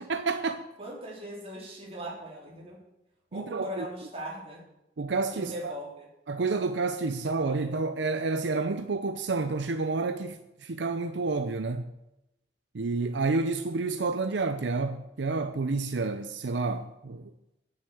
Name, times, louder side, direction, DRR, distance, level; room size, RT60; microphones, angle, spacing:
voice 1, 0.0-0.7 3.3-3.9 5.0-5.7 6.3-11.9 12.7-17.3, right 3 dB, 90° right, 0.6 m, -29 dB
voice 2, 0.8-2.8 3.3-4.6 5.3-6.1, equal, 35° right, 3.6 m, -39 dB
9.7 x 6.9 x 7.8 m
head